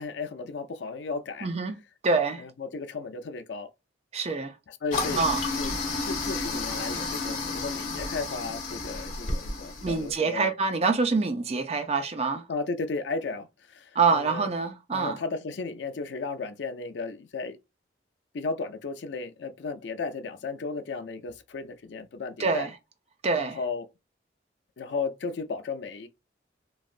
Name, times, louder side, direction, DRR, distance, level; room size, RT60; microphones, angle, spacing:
voice 1, 0.0-1.5 2.4-3.7 4.7-5.2 5.6-5.7 6.0-10.5 12.5-14.5 14.9-17.6 18.3-22.7 23.4-23.9 24.8-26.1, left 4 dB, 75° left, 0.5 m, -34 dB
voice 2, 1.4-1.7 2.0-2.4 4.1-4.6 5.2-5.4 9.8-12.5 13.9-15.2 22.4-22.7 23.2-23.6, right 4 dB, 35° right, 0.5 m, -26 dB
Toilet flush, 4.9-10.1, left 3 dB, 45° left, 1.1 m, -31 dB
3.1 x 2.5 x 2.4 m
head